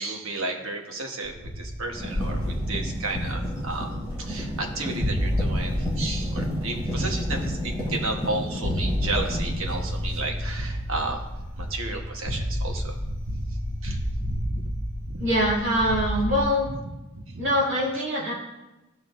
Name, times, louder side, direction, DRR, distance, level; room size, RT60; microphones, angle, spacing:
voice 1, 0.0-3.9 4.2-11.2 11.6-13.4 13.8-14.6 15.1-15.3 16.8-17.5 17.9-18.0, right 3 dB, 70° right, 2 dB, 1.2 m, -33 dB
sound 1, 1.2-16.4, equal, 90° right, 3.2 m, -30 dB
sound 2, 1.9-10.8 11.6-11.7, equal, 15° right, 2.6 m, -33 dB
voice 2, 15.2-16.7 17.4-18.3, equal, 55° right, -7 dB, 2.7 m, -23 dB
15.0 x 5.6 x 2.6 m, 1.0 s
head